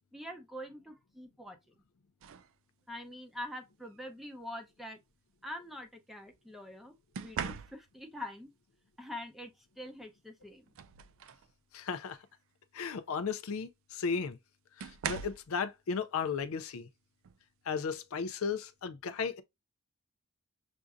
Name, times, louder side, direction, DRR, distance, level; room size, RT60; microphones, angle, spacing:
voice 1, 0.1-1.7 2.9-5.0 5.4-8.5 9.0-10.7, left 1 dB, ahead, 0.6 m, -45 dB
sound 1, 2.2-2.6 3.8-4.1 7.1-8.1 9.9-10.0 10.4-11.5 12.0-12.3 13.6-13.7 14.8-15.5 17.2-17.4 17.9-18.2, right 7 dB, 65° right, 0.4 m, -41 dB
voice 2, 11.7-12.2 12.7-14.4 14.8-16.9 17.7-19.4, left 5 dB, 70° left, 0.5 m, -35 dB
6.0 x 2.6 x 2.3 m
head